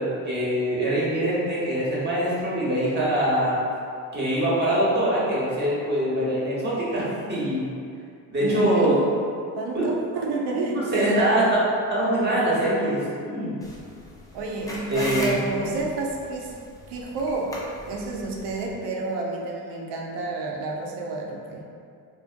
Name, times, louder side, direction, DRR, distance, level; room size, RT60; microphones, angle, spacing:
voice 1, 0.0-3.6 4.1-7.7 8.3-9.0 9.7-9.9 10.7-11.6 11.9-13.5 14.9-15.7, right 1 dB, 25° right, -7 dB, 0.9 m, -24 dB
voice 2, 8.4-9.0 9.5-11.6 14.3-16.6 16.9-17.6 17.8-21.6, right 3 dB, 70° right, -1 dB, 0.6 m, -29 dB
sound 1, 13.6-18.7, left 1 dB, 10° left, 0.4 m, -37 dB
2.5 x 2.1 x 2.5 m, 2.4 s
supercardioid pair, 80°, 43 cm